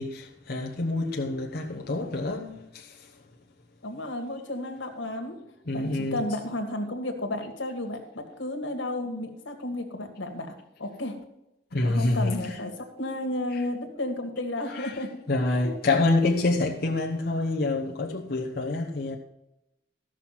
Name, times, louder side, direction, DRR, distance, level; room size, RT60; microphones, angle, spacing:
voice 1, 0.0-3.1 5.7-6.2 11.7-12.6 13.5-13.6 14.7-15.0 15.3-19.2, left 2 dB, 55° left, 1.0 m, -27 dB
voice 2, 3.8-5.4 5.7-11.2 11.8-12.7 13.0-15.2 15.5-16.0, left 1 dB, 85° left, 1.9 m, -33 dB
14.5 x 6.2 x 5.8 m
head